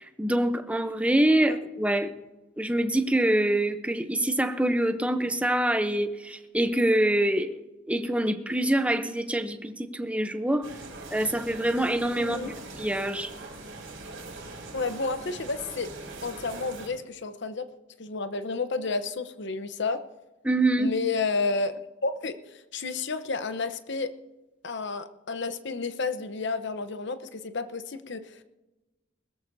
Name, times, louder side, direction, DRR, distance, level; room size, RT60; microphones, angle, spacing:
voice 1, 0.0-2.1 2.6-7.6 7.9-10.7 11.1-12.4 12.8-13.3 20.4-20.9, right 1 dB, 5° right, 9 dB, 0.7 m, -25 dB
sound 1, 10.6-16.9, right 2 dB, 65° right, 4.0 m, -42 dB
voice 2, 12.2-12.5 14.7-15.9 16.2-17.7 18.0-20.0 20.8-24.1 24.6-28.4, left 4 dB, 60° left, 10 dB, 0.9 m, -31 dB
21.0 x 13.5 x 2.7 m, 1.1 s
head